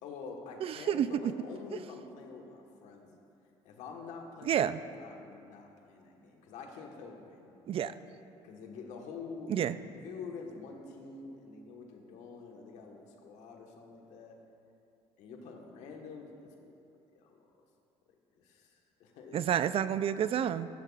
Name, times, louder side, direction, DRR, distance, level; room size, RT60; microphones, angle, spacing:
voice 1, 0.0-3.1 3.6-4.6 5.0-7.9 8.4-9.6 9.9-14.3 15.2-16.7 17.2-17.4 18.4-18.7 19.0-19.4, left 4 dB, 80° left, 1 dB, 1.4 m, -47 dB
voice 2, 0.6-1.1 4.5-4.8 7.7-7.9 9.5-9.8 19.3-20.7, right 9 dB, 50° right, 14 dB, 0.4 m, -29 dB
14.5 x 12.0 x 2.4 m, 2.7 s
supercardioid pair, 75°, 12 cm